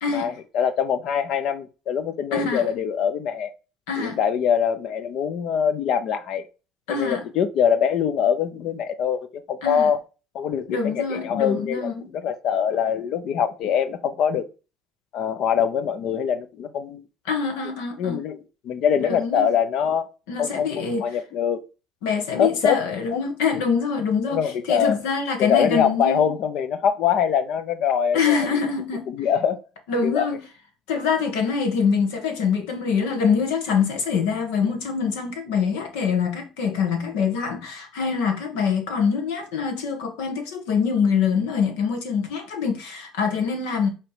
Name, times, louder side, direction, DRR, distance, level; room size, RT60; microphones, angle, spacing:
voice 1, 0.1-3.5 4.0-6.4 6.9-10.0 10.3-14.5 15.1-17.0 18.0-20.1 20.4-21.6 22.4-22.8 23.1-23.2 24.3-25.0 25.4-28.6 29.1-29.6 30.0-30.3, left 8 dB, 60° left, 0.8 m, -23 dB
voice 2, 2.3-2.7 3.9-4.2 6.9-7.2 9.6-9.9 10.7-12.1 17.3-18.2 19.0-19.5 20.3-21.2 22.0-26.3 28.1-29.1 29.9-30.4 30.9-43.9, left 6 dB, 80° left, 1.6 m, -24 dB
5.8 x 3.4 x 5.0 m
supercardioid pair, 80°, 0 cm